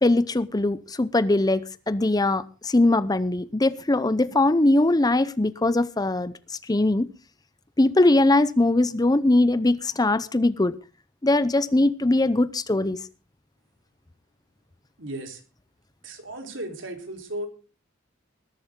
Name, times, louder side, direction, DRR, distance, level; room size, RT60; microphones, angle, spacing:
voice 1, 0.0-6.3 6.7-7.1 7.8-10.8 11.2-13.0, left 2 dB, 20° left, 0.6 m, -21 dB
voice 2, 15.0-15.4 16.0-17.5, right 1 dB, 70° right, 3.9 m, -35 dB
20.5 x 11.5 x 3.7 m
head